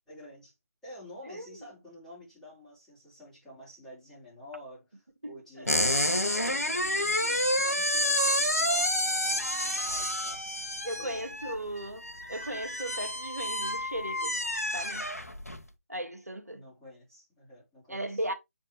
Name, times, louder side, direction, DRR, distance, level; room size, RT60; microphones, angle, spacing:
voice 1, 0.1-0.5 0.8-11.3 16.5-18.2, equal, 5° left, 3.7 m, -49 dB
voice 2, 5.2-5.7 10.8-14.4 14.7-15.1 15.9-16.6 17.9-18.3, right 1 dB, 85° right, 1.4 m, -37 dB
sound 1, 5.7-15.6, left 1 dB, 85° left, 1.3 m, -29 dB
7.8 x 4.3 x 3.0 m
figure-of-eight pair, 150°, 8 cm